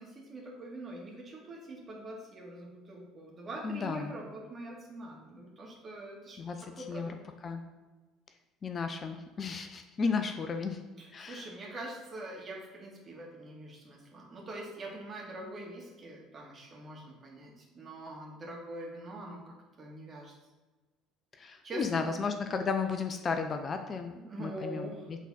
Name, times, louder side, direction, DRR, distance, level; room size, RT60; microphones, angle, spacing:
voice 1, 0.0-7.1 11.0-20.3 21.6-22.3 24.1-25.1, right 1 dB, 30° right, -2 dB, 2.0 m, -44 dB
voice 2, 3.6-4.1 6.4-7.2 7.4-7.6 8.6-10.8 11.1-11.4 21.4-24.9, left 5 dB, 35° left, 6 dB, 0.6 m, -34 dB
8.2 x 3.9 x 4.1 m, 1.2 s
figure-of-eight pair, 60°, 0 cm